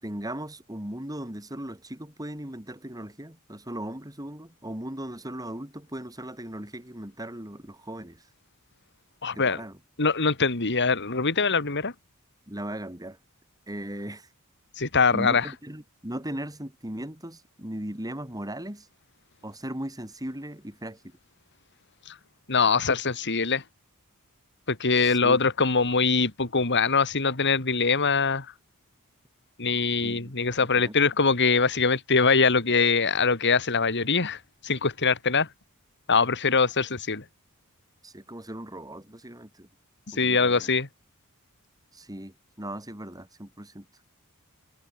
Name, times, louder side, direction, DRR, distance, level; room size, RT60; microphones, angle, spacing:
voice 1, 0.0-8.2 9.4-9.8 12.5-13.2 13.7-14.3 15.1-18.9 19.4-21.0 24.9-25.4 30.0-30.3 30.7-30.9 38.0-39.7 40.1-40.7 41.9-43.9, right 1 dB, 15° right, 5.2 m, -38 dB
voice 2, 9.2-9.6 10.0-11.9 14.8-15.5 22.5-23.6 24.7-28.5 29.6-34.4 34.6-35.5 36.1-37.2 40.1-40.9, left 4 dB, 55° left, 2.8 m, -23 dB
head